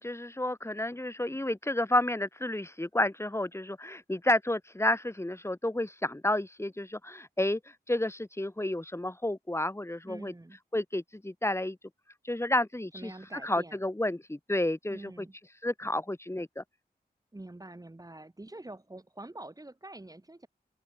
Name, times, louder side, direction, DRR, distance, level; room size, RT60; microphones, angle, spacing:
voice 1, 0.0-7.6 7.9-10.3 10.7-11.8 12.2-15.2 15.6-16.6, left 1 dB, 15° left, 5.1 m, -31 dB
voice 2, 10.0-10.6 12.9-13.8 14.9-15.3 17.3-20.5, right 2 dB, 20° right, 6.6 m, -45 dB
open air
cardioid pair, 60°, 17 cm